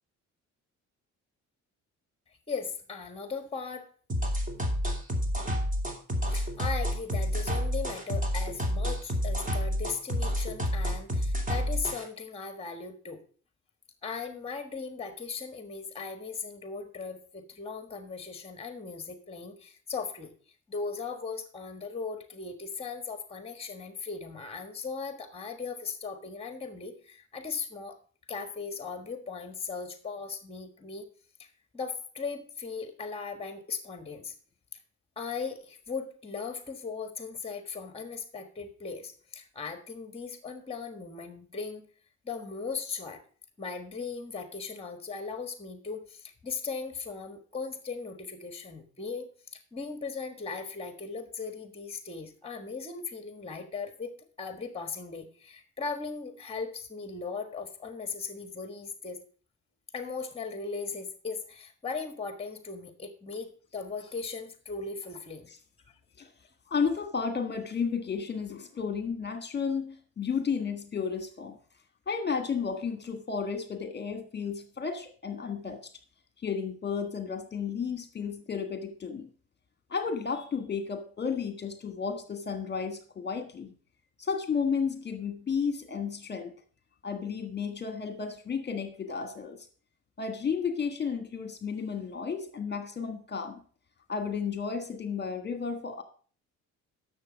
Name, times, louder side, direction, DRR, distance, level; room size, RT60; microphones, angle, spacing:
voice 1, 2.5-3.9 6.3-13.2 14.0-20.3 20.7-28.0 28.3-31.1 31.4-34.3 35.2-41.9 42.2-43.2 43.6-54.1 54.4-59.2 59.9-65.5, left 5 dB, 20° left, 8 dB, 1.4 m, -38 dB
sound 1, 4.1-12.0, equal, 25° right, 2.7 m, -29 dB
voice 2, 66.7-71.6 72.1-75.9 76.4-79.3 79.9-83.7 84.2-86.5 87.0-89.6 90.2-93.6 94.1-96.0, left 6 dB, 35° left, 7 dB, 1.5 m, -32 dB
11.0 x 6.8 x 5.2 m, 0.42 s
cardioid pair, 90°, 30 cm